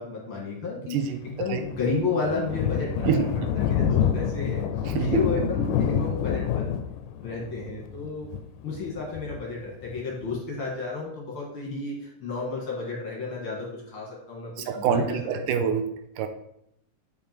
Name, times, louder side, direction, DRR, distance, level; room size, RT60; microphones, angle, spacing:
voice 1, 0.0-1.0 1.2-3.3 3.5-4.7 5.0-6.7 7.2-8.3 8.6-15.2, left 3 dB, 50° left, -2 dB, 2.1 m, -31 dB
voice 2, 0.9-1.2 1.5-1.6 3.0-3.5 4.9-5.2 14.6-15.9 16.2-16.3, right 7 dB, 85° right, 7 dB, 2.3 m, -26 dB
Thunder, 1.2-10.4, left 8 dB, 85° left, 2.2 m, -28 dB
7.7 x 5.6 x 4.4 m, 0.76 s
omnidirectional pair, 3.8 m